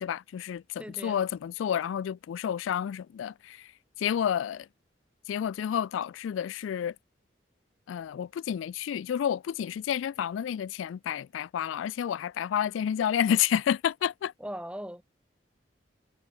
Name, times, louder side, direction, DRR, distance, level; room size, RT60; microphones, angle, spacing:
voice 1, 0.0-3.7 4.0-4.7 5.3-6.9 7.9-14.3, left 9 dB, 90° left, 0.3 m, -30 dB
voice 2, 0.8-1.2 14.4-15.0, equal, 5° right, 3.9 m, -39 dB
head